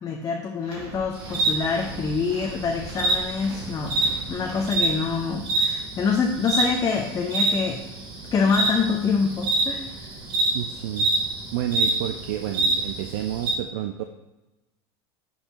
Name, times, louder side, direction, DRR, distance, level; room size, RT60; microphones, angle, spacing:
voice 1, 0.0-7.8 8.3-9.9, left 5 dB, 25° left, 2 dB, 0.6 m, -26 dB
sound 1, 0.6-5.4, right 4 dB, 90° right, 1.5 m, -41 dB
sound 2, 1.1-13.5, right 2 dB, 40° right, 2.4 m, -27 dB
voice 2, 10.5-11.1 11.5-14.0, right 12 dB, 75° right, 6 dB, 0.4 m, -30 dB
9.8 x 4.0 x 2.9 m, 1.0 s
supercardioid pair, 115°, 14 cm